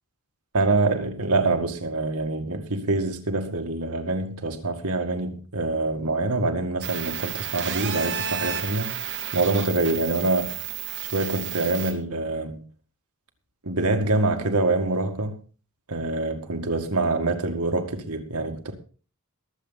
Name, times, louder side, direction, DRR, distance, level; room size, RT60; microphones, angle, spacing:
voice 1, 0.5-9.0 9.3-10.6 11.0-12.6 13.6-15.4 15.9-18.7, right 2 dB, 90° right, 2.0 m, -25 dB
sound 1, 6.8-11.9, right 8 dB, 55° right, 2.5 m, -32 dB
22.0 x 7.7 x 4.1 m
head